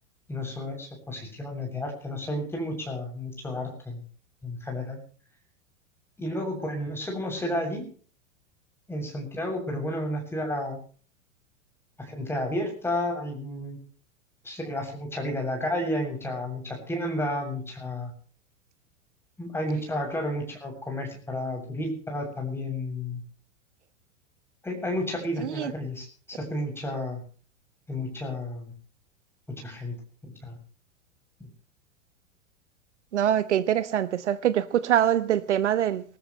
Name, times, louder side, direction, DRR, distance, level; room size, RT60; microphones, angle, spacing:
voice 1, 0.3-4.0 4.4-5.0 6.2-7.9 8.9-10.8 12.0-13.8 14.4-18.1 19.4-23.2 24.6-27.2 27.9-28.7 29.6-29.9 30.2-30.6 31.4-31.5, left 1 dB, 5° left, 7.5 m, -32 dB
voice 2, 33.1-36.0, right 10 dB, 60° right, 1.2 m, -24 dB
22.5 x 19.0 x 3.2 m
figure-of-eight pair, 95°, 40 cm